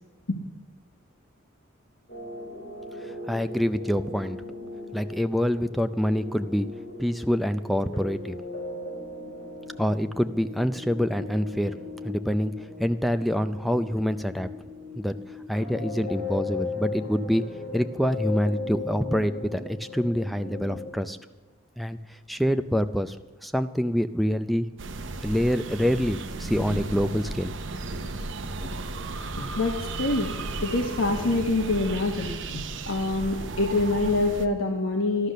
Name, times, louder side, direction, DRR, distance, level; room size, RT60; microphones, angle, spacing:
sound 1, 2.1-20.9, left 3 dB, 50° left, 6.2 m, -37 dB
voice 1, 3.0-4.4 4.9-6.7 7.0-8.4 9.8-11.7 12.0-14.5 15.0-15.2 15.5-17.4 17.7-21.2 21.8-24.7 25.2-27.5, equal, ahead, 9 dB, 0.4 m, -26 dB
sound 2, 24.8-34.5, right 3 dB, 65° right, 0.8 m, -34 dB
voice 2, 29.4-30.3 30.6-35.3, left 2 dB, 80° left, 1 dB, 1.3 m, -26 dB
13.5 x 12.0 x 6.5 m, 1.2 s
head